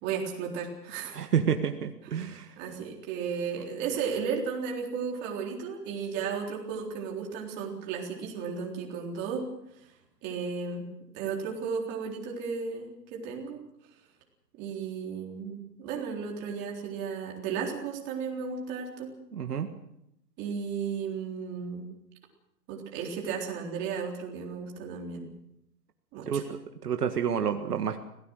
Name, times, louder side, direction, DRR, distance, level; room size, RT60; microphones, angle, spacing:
voice 1, 0.0-1.2 2.1-9.5 10.2-10.9 11.1-13.6 14.6-19.1 20.4-21.9 22.7-25.3 26.1-26.4, right 6 dB, 20° right, 0 dB, 3.9 m, -34 dB
voice 2, 1.1-2.5 19.3-19.7 26.3-28.0, right 7 dB, 65° right, 6 dB, 1.9 m, -29 dB
26.0 x 18.0 x 6.5 m, 0.80 s
hypercardioid pair, 155°, 49 cm